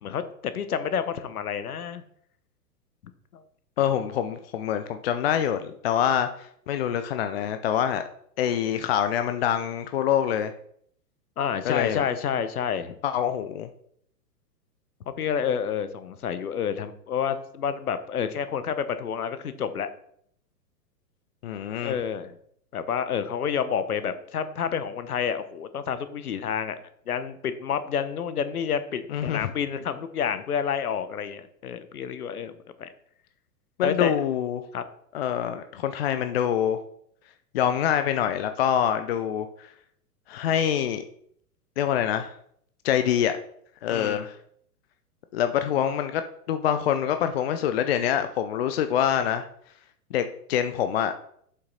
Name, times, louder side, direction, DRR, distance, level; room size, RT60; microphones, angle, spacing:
voice 1, 0.0-2.0 3.3-3.4 4.0-4.1 11.4-12.9 15.2-19.9 21.8-22.4 22.7-26.8 27.1-32.5 32.8-32.9 33.8-34.1 34.7-34.8 43.9-44.3, left 7 dB, 65° left, 12 dB, 1.0 m, -29 dB
voice 2, 3.8-6.3 6.7-8.0 8.4-10.5 11.6-12.1 13.0-13.7 21.4-21.9 29.1-29.5 33.8-34.6 35.1-36.8 37.5-39.5 40.3-41.0 41.8-42.3 42.8-43.3 43.8-44.4 45.3-46.2 46.5-49.4 50.1-51.1, left 9 dB, 40° left, 9 dB, 0.5 m, -25 dB
7.7 x 5.8 x 4.1 m, 0.67 s
figure-of-eight pair, 110°, 48 cm